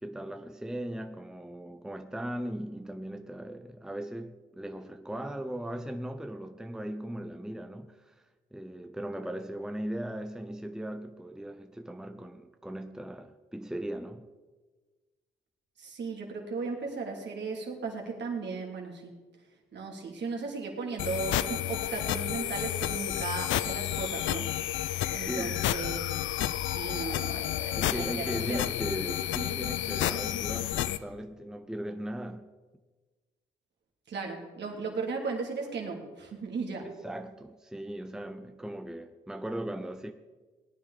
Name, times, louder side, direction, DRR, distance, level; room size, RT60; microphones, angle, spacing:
voice 1, 0.0-8.1 8.5-14.3 25.2-25.6 27.8-32.5 36.8-40.1, right 1 dB, 5° right, 0.9 m, -38 dB
voice 2, 15.8-19.1 19.7-24.5 25.1-26.2 26.6-28.6 34.1-36.9, right 4 dB, 60° right, 3.2 m, -36 dB
sound 1, 21.0-31.0, left 13 dB, 75° left, 0.6 m, -31 dB
18.0 x 9.7 x 5.1 m
supercardioid pair, 55°, 20 cm